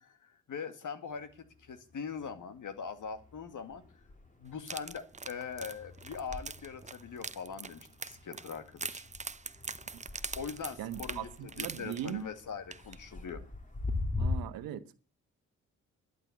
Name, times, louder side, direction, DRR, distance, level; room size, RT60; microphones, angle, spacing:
voice 1, 0.0-3.8 4.4-9.1 10.4-13.4, left 6 dB, 60° left, 2.3 m, -42 dB
sound 1, 1.1-2.3 2.7-14.4, left 3 dB, 20° left, 3.0 m, -42 dB
sound 2, 4.6-12.4 12.7-13.0 13.3-13.4, right 4 dB, 20° right, 0.8 m, -42 dB
voice 2, 10.8-12.2 14.2-15.0, right 11 dB, 80° right, 1.3 m, -39 dB
12.0 x 11.0 x 8.1 m
supercardioid pair, 50°, 34 cm